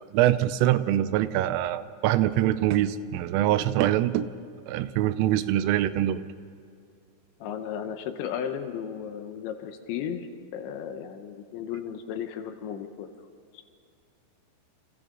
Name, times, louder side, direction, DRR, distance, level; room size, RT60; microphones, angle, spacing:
voice 1, 0.1-4.3 4.7-6.2, right 13 dB, 85° right, 13 dB, 3.3 m, -24 dB
voice 2, 7.4-10.3 10.5-13.1 13.5-13.6, left 8 dB, 75° left, 7 dB, 3.0 m, -34 dB
29.0 x 27.5 x 3.9 m, 2.4 s
omnidirectional pair, 5.8 m